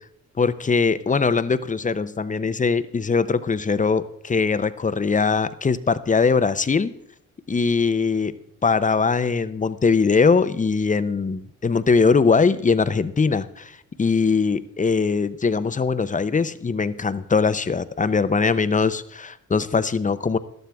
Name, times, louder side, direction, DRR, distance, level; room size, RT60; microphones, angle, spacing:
voice 1, 0.4-6.9 7.5-8.3 8.6-20.4, left 5 dB, 25° left, 14 dB, 0.7 m, -21 dB
12.5 x 12.0 x 3.5 m, 0.76 s
cardioid pair, 70°, 32 cm